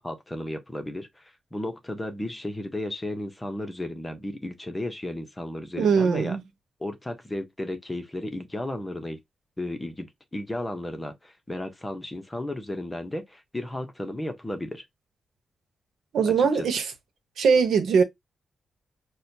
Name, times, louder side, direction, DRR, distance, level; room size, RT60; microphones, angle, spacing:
voice 1, 0.0-6.4 6.8-9.2 9.6-14.8 16.2-16.7, left 1 dB, 10° left, 0.8 m, -34 dB
voice 2, 5.8-6.4 16.1-16.8 17.4-18.0, right 6 dB, 80° right, 0.9 m, -21 dB
6.2 x 2.2 x 2.7 m
wide cardioid pair, 165°, 0 cm